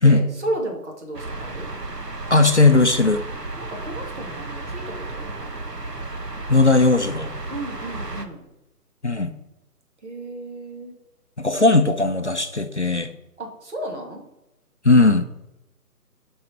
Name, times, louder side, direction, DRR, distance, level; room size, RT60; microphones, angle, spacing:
voice 1, 0.0-1.7 3.6-5.6 7.5-8.5 10.0-10.9 13.4-14.2, right 1 dB, 45° right, 0 dB, 2.7 m, -33 dB
sound 1, 1.1-8.2, right 2 dB, 80° right, 1.6 m, -33 dB
voice 2, 2.3-3.2 6.5-7.3 9.0-9.3 11.4-13.1 14.8-15.3, left 3 dB, 45° left, 8 dB, 0.6 m, -17 dB
11.5 x 5.5 x 4.5 m, 0.93 s
figure-of-eight pair, 150°, 48 cm